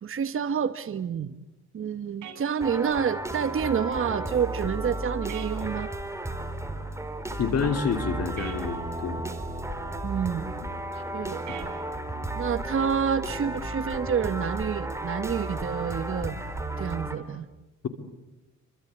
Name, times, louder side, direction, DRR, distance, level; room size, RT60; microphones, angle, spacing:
voice 1, 0.0-1.5 1.7-5.9 10.0-10.5 11.1-11.4 12.4-16.4 16.8-17.5, right 7 dB, 45° right, 11 dB, 1.2 m, -28 dB
sound 1, 2.2-2.4 5.3-5.5 8.4-8.6 11.5-11.7, right 9 dB, 75° right, 6.8 m, -40 dB
sound 2, 2.6-17.2, right 1 dB, 10° right, 3.9 m, -33 dB
voice 2, 7.4-9.2 11.5-11.6, left 6 dB, 55° left, 7 dB, 3.2 m, -28 dB
27.5 x 24.5 x 8.6 m, 1.0 s
cardioid pair, 90°, 30 cm